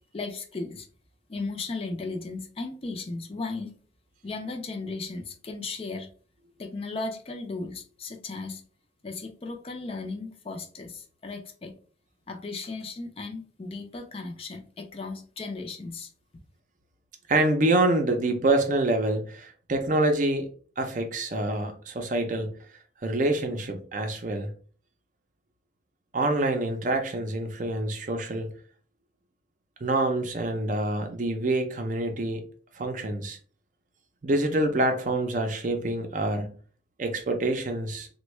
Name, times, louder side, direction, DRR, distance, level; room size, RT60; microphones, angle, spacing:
voice 1, 0.1-0.9 1.3-3.7 4.2-6.1 6.6-8.6 9.0-11.7 12.3-16.1, left 3 dB, 30° left, 0.4 m, -36 dB
voice 2, 17.3-20.5 20.8-22.5 23.0-24.5 26.1-28.5 29.8-32.4 32.8-33.4 34.2-36.5 37.0-38.1, right 2 dB, 40° right, 0.5 m, -26 dB
3.4 x 2.2 x 3.1 m
head